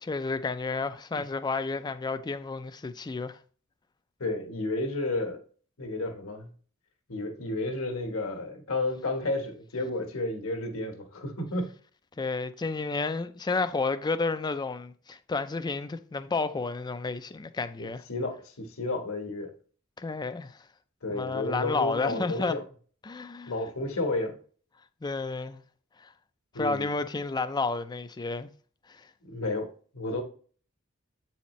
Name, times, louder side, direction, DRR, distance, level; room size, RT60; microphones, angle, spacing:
voice 1, 0.0-3.4 12.2-18.0 20.0-20.6 21.1-22.6 23.0-23.5 25.0-25.6 26.0-26.1 26.6-28.5 28.9-29.0, left 3 dB, 20° left, 0.4 m, -31 dB
voice 2, 4.2-5.4 5.8-6.5 7.1-11.7 17.8-19.5 21.0-22.6 23.5-24.4 26.5-26.9 29.2-30.2, left 2 dB, 75° left, 1.4 m, -32 dB
8.1 x 4.3 x 3.1 m
head